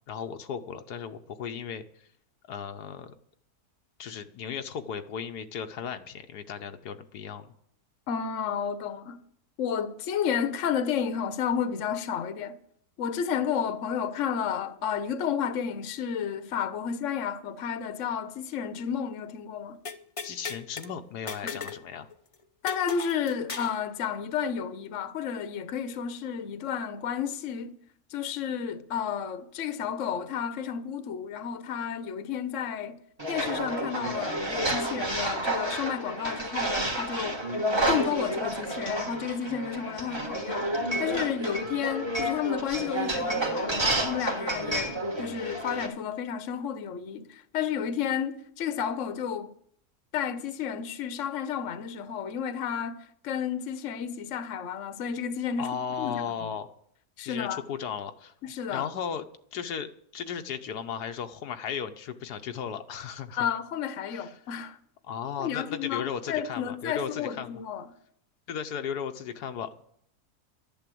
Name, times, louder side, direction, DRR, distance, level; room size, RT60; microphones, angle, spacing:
voice 1, 0.1-1.8 2.5-3.1 4.0-7.5 20.2-22.1 55.6-56.7 57.2-58.3 58.7-59.3 59.5-63.5 64.0-64.4 65.0-67.5 68.5-69.9, left 7 dB, 85° left, 1.4 m, -36 dB
voice 2, 8.1-9.2 9.6-12.6 13.0-19.8 21.4-21.6 22.6-27.7 28.1-33.0 33.3-37.4 37.9-40.7 41.0-49.5 50.1-53.0 53.2-56.5 57.2-57.6 58.4-58.9 63.4-64.8 65.4-67.9, left 8 dB, 55° left, 1.2 m, -31 dB
sound 1, 19.9-20.9 21.3-21.8 22.1-22.2 22.7-23.8, left 5 dB, 40° left, 0.5 m, -37 dB
sound 2, 33.2-45.9, right 1 dB, 15° right, 1.5 m, -30 dB
12.0 x 10.5 x 7.7 m
omnidirectional pair, 1.7 m